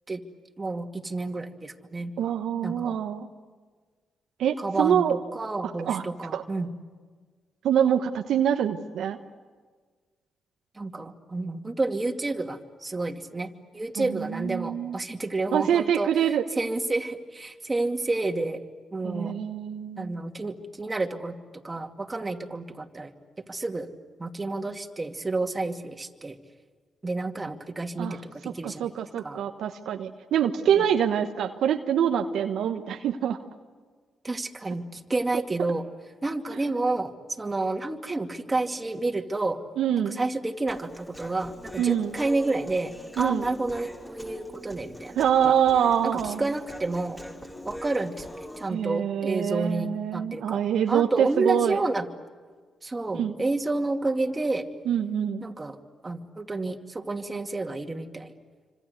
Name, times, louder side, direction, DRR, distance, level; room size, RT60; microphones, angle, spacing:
voice 1, 0.6-2.1 2.6-3.0 4.6-6.7 10.7-16.1 16.6-18.6 18.9-19.3 20.0-23.1 23.5-23.9 24.2-26.4 27.0-28.9 29.2-29.4 30.8-30.9 34.2-35.8 36.2-39.6 40.0-45.1 45.4-45.6 46.0-47.2 47.6-48.3 48.6-50.6 50.9-52.1 52.8-54.7 55.4-55.8 56.0-58.3, right 2 dB, 25° right, 4 dB, 2.6 m, -30 dB
voice 2, 2.2-3.3 4.4-5.2 5.8-6.0 6.3-6.4 7.6-9.2 14.0-15.0 15.5-16.4 19.0-20.1 28.0-28.2 28.6-33.4 39.8-40.2 41.8-42.1 43.2-43.5 45.2-46.4 48.7-51.8 53.1-53.3 54.9-55.5, right 9 dB, 75° right, 6 dB, 1.1 m, -25 dB
Human voice, 40.7-48.7, left 1 dB, 20° left, 5.9 m, -42 dB
27.5 x 26.0 x 8.2 m, 1.5 s
supercardioid pair, 50°, 0 cm